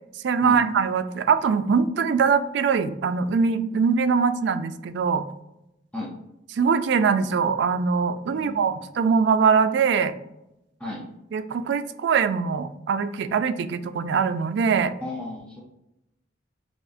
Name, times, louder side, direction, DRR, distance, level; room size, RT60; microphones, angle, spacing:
voice 1, 0.2-5.2 6.6-10.1 11.3-14.9, right 5 dB, 65° right, 11 dB, 0.3 m, -22 dB
voice 2, 8.3-8.7 10.8-11.1 15.0-15.6, left 1 dB, 5° left, -4 dB, 0.6 m, -34 dB
5.8 x 2.1 x 2.5 m, 0.87 s
head